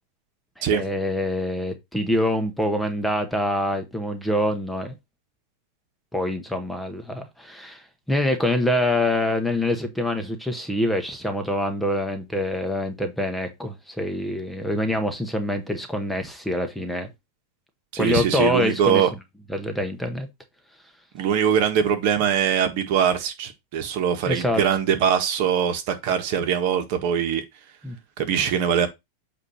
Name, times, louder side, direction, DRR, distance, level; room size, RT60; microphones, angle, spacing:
voice 1, 0.6-4.9 6.1-17.1 18.0-19.0 19.5-20.3 24.3-24.6 27.8-28.0, left 1 dB, 5° left, 0.9 m, -25 dB
voice 2, 17.9-19.1 21.1-27.4 28.2-28.9, right 8 dB, 55° right, 1.5 m, -22 dB
8.1 x 2.7 x 5.6 m
supercardioid pair, 140°, 0 cm